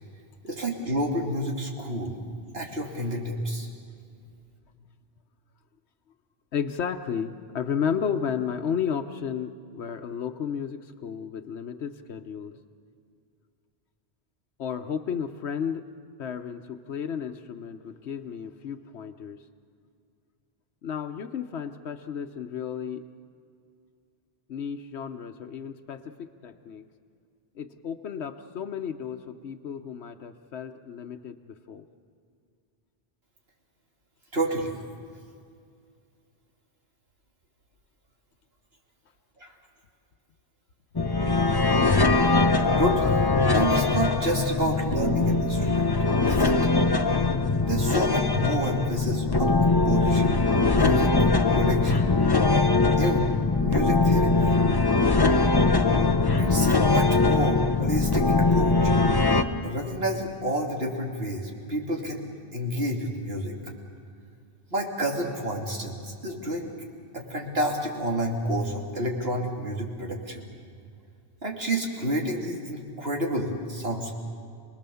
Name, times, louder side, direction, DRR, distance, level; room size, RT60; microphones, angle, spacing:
voice 1, 0.4-2.2 2.5-3.7 34.3-34.8 39.4-39.5 42.8-43.3 43.5-45.9 46.3-46.6 47.6-50.3 50.6-51.2 51.5-52.1 53.0-54.6 56.4-58.9 59.6-63.7 64.7-66.7 67.1-70.5 71.4-74.1, equal, 65° right, 0 dB, 3.0 m, -29 dB
voice 2, 6.5-12.6 14.6-15.9 16.2-19.4 20.8-23.0 24.5-26.8 27.6-31.9, left 7 dB, 85° left, 5 dB, 1.2 m, -33 dB
sound 1, 41.0-59.4, left 3 dB, 25° left, 0.8 m, -22 dB
28.5 x 19.5 x 7.0 m, 2.3 s
omnidirectional pair, 1.1 m